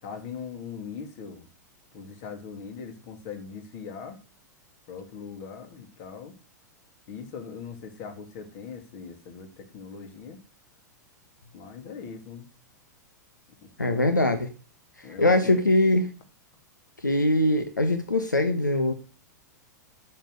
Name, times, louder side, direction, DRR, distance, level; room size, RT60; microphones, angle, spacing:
voice 1, 0.0-1.5 1.9-4.2 4.9-6.3 7.1-10.4 11.5-12.5 13.6-14.3 15.0-15.6, left 6 dB, 45° left, 3.1 m, -40 dB
voice 2, 13.8-14.5 15.0-16.1 17.0-18.9, left 1 dB, 85° left, 1.5 m, -22 dB
8.8 x 7.4 x 8.2 m
figure-of-eight pair, 100°, 10 cm